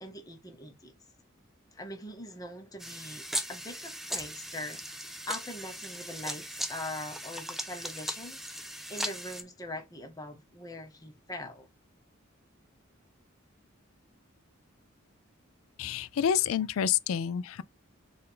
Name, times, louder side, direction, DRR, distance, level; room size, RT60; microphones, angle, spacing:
voice 1, 0.0-0.9 1.7-11.7, left 1 dB, 15° left, 0.8 m, -42 dB
sound 1, 2.8-9.4, equal, ahead, 0.4 m, -38 dB
voice 2, 15.8-17.6, left 8 dB, 80° left, 0.4 m, -28 dB
4.3 x 2.6 x 3.7 m
head